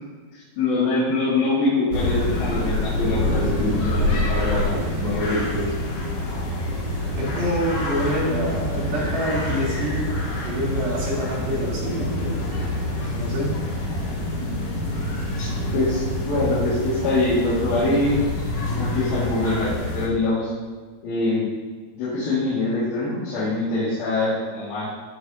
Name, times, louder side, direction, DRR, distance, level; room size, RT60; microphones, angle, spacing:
voice 1, 0.6-5.7 15.4-18.2 18.7-20.5 21.0-21.5 21.9-24.9, left 2 dB, 80° left, -10 dB, 3.9 m, -24 dB
sound 1, 1.9-20.1, left 1 dB, 50° left, 2.1 m, -26 dB
voice 2, 7.1-10.1 10.4-12.4 13.2-13.5, equal, 90° right, -7 dB, 5.1 m, -26 dB
14.5 x 8.1 x 2.7 m, 1.5 s
omnidirectional pair, 4.2 m